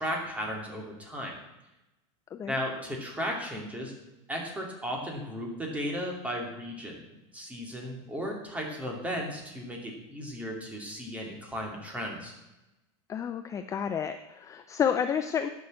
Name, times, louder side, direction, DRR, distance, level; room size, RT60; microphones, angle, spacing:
voice 1, 0.0-1.3 2.5-3.9 4.3-7.0 7.3-12.3, equal, 10° right, 0 dB, 2.7 m, -35 dB
voice 2, 13.1-15.5, left 7 dB, 20° left, 8 dB, 0.5 m, -30 dB
10.0 x 6.6 x 8.3 m, 0.99 s
supercardioid pair, 145°, 16 cm